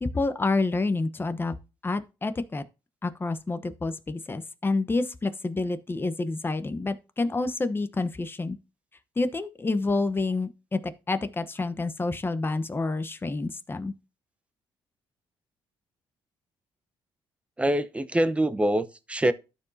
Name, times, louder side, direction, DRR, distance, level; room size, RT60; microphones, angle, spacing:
voice 1, 0.0-1.5 1.8-2.6 3.0-8.6 9.2-13.9, left 3 dB, 25° left, 1.0 m, -28 dB
voice 2, 17.6-19.3, right 1 dB, 15° right, 0.8 m, -24 dB
13.0 x 4.7 x 2.8 m
cardioid pair, 95°, 10 cm